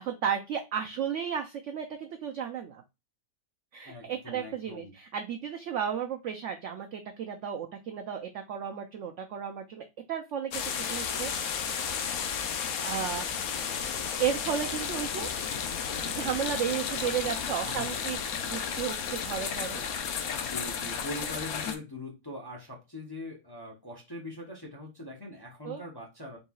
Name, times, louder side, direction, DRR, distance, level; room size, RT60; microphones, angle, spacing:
voice 1, 0.0-2.8 3.7-11.8 12.8-13.5 14.2-15.3 16.0-19.8 25.6-25.8, right 8 dB, 75° right, 0.7 m, -34 dB
voice 2, 3.8-4.9 17.0-18.1 20.3-26.4, left 1 dB, 20° left, 0.6 m, -42 dB
sound 1, 10.5-21.8, left 7 dB, 65° left, 1.0 m, -33 dB
4.0 x 3.7 x 2.3 m
omnidirectional pair, 1.8 m